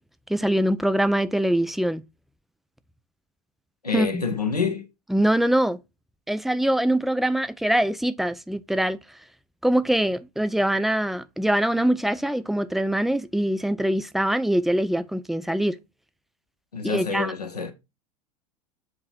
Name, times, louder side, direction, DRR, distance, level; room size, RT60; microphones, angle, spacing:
voice 1, 0.3-2.0 3.9-4.1 5.1-5.8 6.3-9.0 9.6-15.8 16.8-17.3, right 1 dB, ahead, 0.3 m, -23 dB
voice 2, 3.8-4.9 16.7-17.7, left 5 dB, 85° left, 0.9 m, -27 dB
7.8 x 2.9 x 4.1 m
figure-of-eight pair, 80°, 20 cm